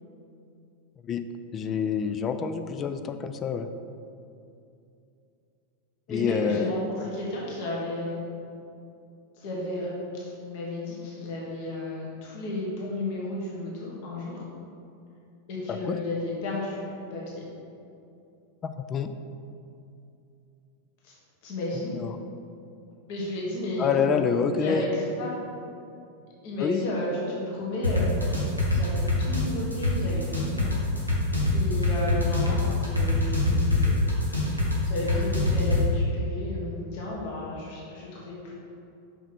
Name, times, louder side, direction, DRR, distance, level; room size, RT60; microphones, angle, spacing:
voice 1, 1.5-3.7 6.1-6.7 15.7-16.0 18.6-19.1 22.0-22.1 23.8-24.9 26.6-26.9, left 6 dB, 25° left, 9 dB, 0.4 m, -27 dB
voice 2, 6.1-8.2 9.3-14.4 15.5-17.2 21.0-21.1 21.4-22.0 23.1-24.2 24.6-25.3 26.4-28.1 28.7-30.7 31.5-34.0 34.8-38.5, left 1 dB, 50° left, -5 dB, 1.6 m, -33 dB
sound 1, 27.8-35.8, left 2 dB, 90° left, 1.3 m, -24 dB
5.9 x 5.7 x 4.4 m, 2.6 s
figure-of-eight pair, 90°, 0 cm